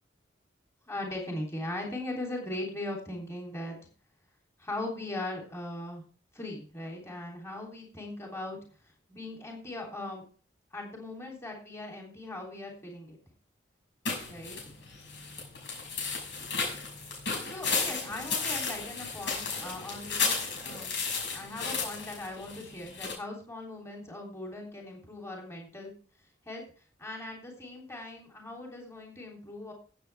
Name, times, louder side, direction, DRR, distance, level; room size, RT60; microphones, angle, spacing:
voice 1, 0.9-3.8 4.6-6.0 6.3-8.6 9.1-10.2 10.7-13.2 14.3-14.6 17.5-20.9 21.3-25.9 26.4-26.6 27.0-29.7, left 1 dB, 15° left, -1 dB, 3.2 m, -39 dB
sound 1, 14.0-23.1, left 4 dB, 75° left, 6.1 m, -34 dB
16.0 x 7.8 x 3.5 m, 0.40 s
head